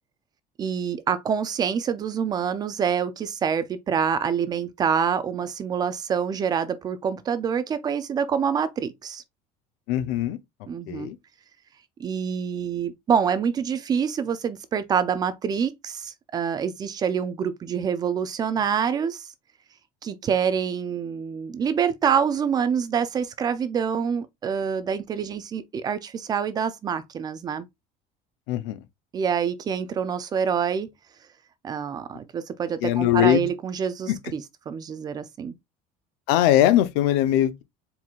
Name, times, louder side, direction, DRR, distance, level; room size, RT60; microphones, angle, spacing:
voice 1, 0.6-9.2 10.7-11.1 12.0-19.3 20.0-27.7 29.1-30.9 31.6-35.5, right 7 dB, 25° right, 0.4 m, -26 dB
voice 2, 9.9-10.4 10.9-11.2 28.5-28.8 32.8-33.4 34.1-34.2 36.3-37.6, left 13 dB, 80° left, 0.6 m, -21 dB
4.5 x 3.7 x 2.3 m
cardioid pair, 165°, 17 cm